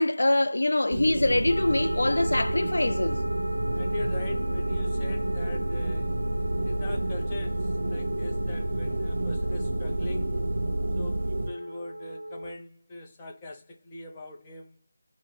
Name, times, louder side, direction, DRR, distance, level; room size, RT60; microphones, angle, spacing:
voice 1, 0.0-3.2, left 1 dB, 90° left, 0.3 m, -24 dB
sound 1, 0.9-11.5, right 1 dB, 55° right, 0.8 m, -29 dB
sound 2, 1.5-12.5, right 1 dB, 35° right, 1.1 m, -37 dB
voice 2, 3.7-10.4 10.9-14.8, left 2 dB, 15° left, 0.5 m, -41 dB
3.7 x 2.0 x 4.1 m
figure-of-eight pair, 175°, 0 cm